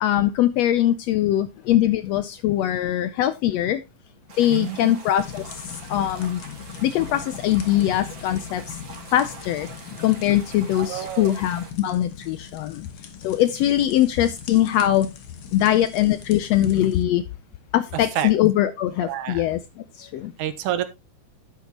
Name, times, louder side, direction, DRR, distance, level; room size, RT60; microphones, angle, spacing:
voice 1, 0.0-3.8 4.4-5.4 5.9-6.4 6.8-8.8 9.1-9.7 10.0-12.9 13.2-15.1 15.5-17.2 17.7-19.6 20.0-20.3, left 12 dB, 80° left, 13 dB, 1.5 m, -21 dB
sound 1, 4.3-11.7, right 4 dB, 50° right, 3.5 m, -44 dB
voice 2, 4.5-4.9 10.7-11.3 17.9-18.3 19.0-19.5 20.4-20.8, right 11 dB, 85° right, 12 dB, 2.4 m, -28 dB
sound 2, 5.2-17.0, left 7 dB, 55° left, 1.7 m, -40 dB
10.5 x 8.3 x 2.9 m, 0.23 s
omnidirectional pair, 3.5 m